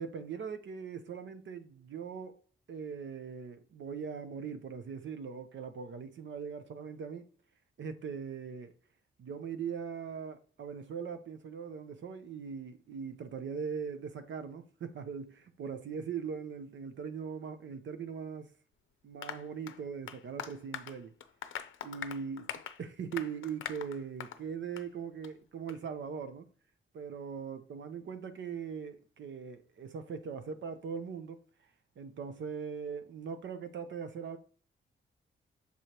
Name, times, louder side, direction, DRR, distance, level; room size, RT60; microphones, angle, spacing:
voice 1, 0.0-2.4 2.7-7.3 7.8-8.8 9.2-18.5 19.0-21.1 21.8-22.5 22.8-26.5 26.9-31.4 32.0-34.4, right 6 dB, 65° right, 0.8 m, -40 dB
Applause, 19.2-24.4 24.8-24.9 25.2-25.3 25.7-25.8, left 9 dB, 75° left, 0.6 m, -43 dB
6.8 x 4.9 x 3.0 m
wide cardioid pair, 145°, 21 cm